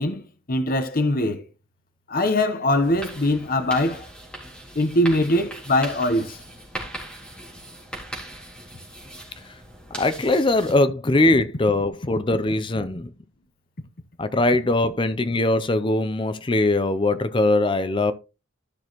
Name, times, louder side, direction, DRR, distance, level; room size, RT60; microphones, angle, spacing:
voice 1, 0.0-1.4 2.1-4.1 4.7-6.4, left 1 dB, 45° left, 0.9 m, -22 dB
sound 1, 2.7-10.7, right 1 dB, 5° left, 3.5 m, -39 dB
voice 2, 9.9-13.1 14.2-18.1, left 2 dB, 25° left, 0.5 m, -21 dB
13.5 x 6.2 x 3.0 m
head